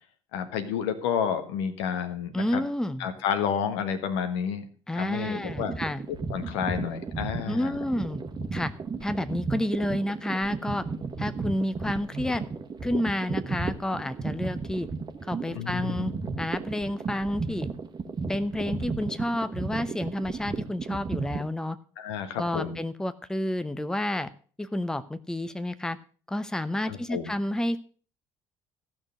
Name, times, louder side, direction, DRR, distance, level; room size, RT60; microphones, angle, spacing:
voice 1, 0.3-2.6 3.0-4.6 4.9-5.7 6.1-7.8 15.5-16.1 22.0-22.8 26.9-27.3, left 8 dB, 70° left, 9 dB, 1.3 m, -30 dB
voice 2, 2.3-3.1 4.9-6.0 7.5-8.2 8.5-8.7 9.0-10.9 11.2-12.4 12.8-14.9 15.2-16.1 16.4-17.7 18.3-21.8 22.4-24.3 24.6-26.0 26.3-27.8, left 1 dB, 5° left, 13 dB, 0.7 m, -30 dB
sound 1, 5.4-21.5, right 4 dB, 30° right, 1.3 m, -34 dB
14.0 x 6.2 x 6.2 m, 0.41 s
figure-of-eight pair, 55°, 15 cm